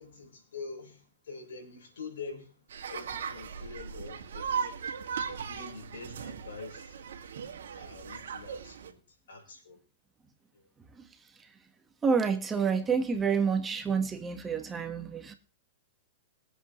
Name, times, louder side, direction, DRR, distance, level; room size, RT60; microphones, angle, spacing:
voice 1, 0.0-4.8 5.3-7.0 7.8-9.0 9.3-9.8 10.5-10.7, left 4 dB, 85° left, 2 dB, 4.6 m, -45 dB
sound 1, 2.7-8.9, right 6 dB, 80° right, 2.0 m, -38 dB
voice 2, 12.0-15.3, right 5 dB, 15° right, 6 dB, 1.5 m, -28 dB
22.5 x 8.2 x 3.2 m, 0.36 s
hypercardioid pair, 135°, 0 cm